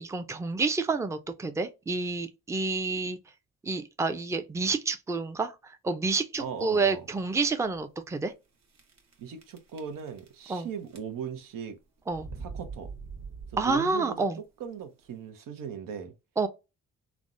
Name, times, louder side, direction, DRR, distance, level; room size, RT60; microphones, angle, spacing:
voice 1, 0.0-3.2 3.6-5.5 5.8-8.3 10.5-10.7 12.1-12.3 13.6-14.4 16.4-16.5, right 4 dB, 10° right, 0.4 m, -29 dB
sound 1, 6.3-6.8 7.4-7.5 7.7-7.8 8.7-9.1 9.4-10.6 10.9-11.4 12.1-14.0, right 4 dB, 55° right, 1.0 m, -43 dB
voice 2, 6.4-7.1 9.2-11.8 12.4-12.9 13.5-14.3 14.6-16.1, right 7 dB, 80° right, 0.7 m, -38 dB
3.3 x 2.0 x 2.5 m
cardioid pair, 65°, 32 cm